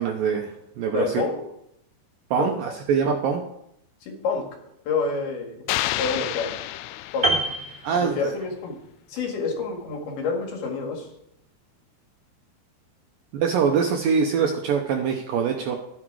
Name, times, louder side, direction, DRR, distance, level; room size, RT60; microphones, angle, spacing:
voice 1, 0.0-1.1 2.3-3.4 7.8-8.3 13.3-15.8, right 6 dB, 75° right, 2 dB, 2.1 m, -24 dB
voice 2, 0.9-1.4 2.3-2.5 4.0-4.4 4.9-5.7 6.0-6.5 7.1-7.3 8.0-8.8 9.1-11.1, left 4 dB, 65° left, 1 dB, 3.8 m, -28 dB
sound 1, 5.7-7.8, left 15 dB, 85° left, 2.4 m, -29 dB
Piano, 7.2-8.7 8.9-9.2, right 2 dB, 20° right, 1.1 m, -26 dB
12.0 x 9.9 x 4.8 m, 0.78 s
omnidirectional pair, 4.9 m